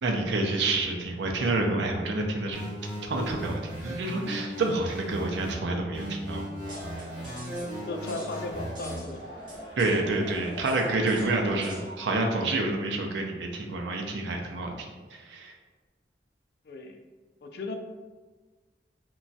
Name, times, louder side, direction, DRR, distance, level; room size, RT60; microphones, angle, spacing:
voice 1, 0.0-2.7 3.0-6.4 7.0-7.1 9.8-15.5, right 2 dB, 85° right, 2 dB, 0.4 m, -28 dB
sound 1, 2.5-5.5 5.9-9.0, equal, 5° right, 1.1 m, -37 dB
sound 2, 6.6-11.9, equal, 25° right, 0.7 m, -42 dB
voice 2, 7.9-9.2 9.6-9.8 16.6-17.0 17.4-17.7, left 2 dB, 60° left, 5 dB, 0.3 m, -36 dB
2.9 x 2.2 x 2.7 m, 1.3 s
head